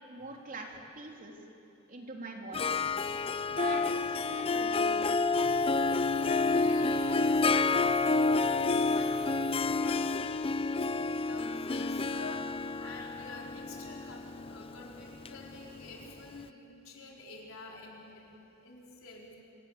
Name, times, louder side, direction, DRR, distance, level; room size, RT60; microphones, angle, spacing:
voice 1, 0.1-0.7 0.9-1.3 1.9-2.8 3.5-5.3, right 2 dB, 40° right, 0 dB, 3.3 m, -43 dB
Harp, 2.5-16.1, left 3 dB, 30° left, 0.5 m, -29 dB
sound 1, 5.4-9.8, left 2 dB, 75° left, 3.8 m, -47 dB
voice 2, 6.4-18.3 18.6-19.4, left 3 dB, 90° left, -1 dB, 4.3 m, -48 dB
27.0 x 18.0 x 8.7 m, 2.9 s
head